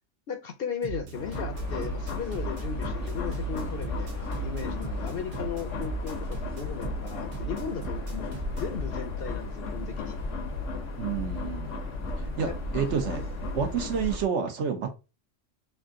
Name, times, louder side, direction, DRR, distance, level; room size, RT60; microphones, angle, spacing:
voice 1, 0.3-10.2 12.4-12.6 13.1-13.2, left 6 dB, 60° left, 6 dB, 0.7 m, -36 dB
sound 1, 0.8-8.8, right 8 dB, 85° right, 1.4 m, -39 dB
sound 2, 1.1-14.2, left 6 dB, 75° left, 1.0 m, -37 dB
sound 3, 1.5-14.2, equal, 20° right, 0.4 m, -37 dB
voice 2, 11.0-11.7 12.4-12.5 12.7-13.2 13.6-14.9, right 7 dB, 70° right, 5 dB, 1.0 m, -29 dB
3.4 x 2.6 x 3.6 m, 0.29 s
omnidirectional pair, 1.3 m